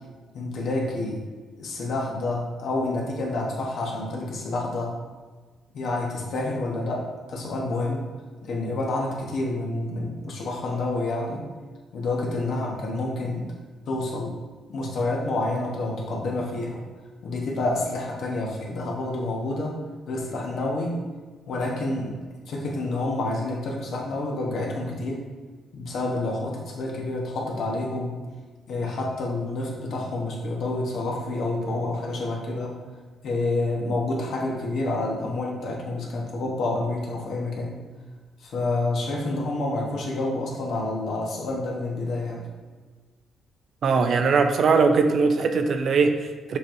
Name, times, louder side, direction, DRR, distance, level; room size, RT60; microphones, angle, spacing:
voice 1, 0.3-1.2 1.6-5.0 5.7-8.1 8.4-11.5 11.9-13.5 13.9-14.4 14.7-16.8 17.2-19.8 20.1-21.0 21.5-22.2 22.5-25.3 25.7-28.2 28.7-32.8 33.2-37.9 38.4-42.5, left 2 dB, 65° left, -2 dB, 1.0 m, -28 dB
voice 2, 43.8-46.6, right 4 dB, 60° right, 7 dB, 0.4 m, -21 dB
6.7 x 3.0 x 2.6 m, 1.4 s
cardioid pair, 90°, 0 cm